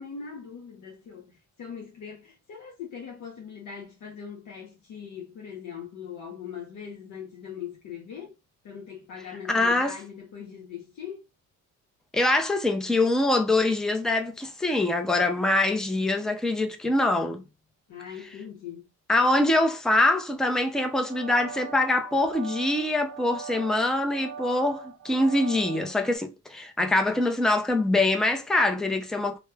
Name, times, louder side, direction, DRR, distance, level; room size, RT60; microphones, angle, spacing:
voice 1, 0.0-8.4 8.6-11.2 17.9-18.8, left 7 dB, 65° left, 0.7 m, -41 dB
voice 2, 9.5-9.9 12.1-17.4 19.1-29.4, left 2 dB, ahead, 0.4 m, -24 dB
sound 1, 20.8-26.2, right 6 dB, 55° right, 0.5 m, -41 dB
3.0 x 2.0 x 2.2 m
cardioid pair, 90°, 33 cm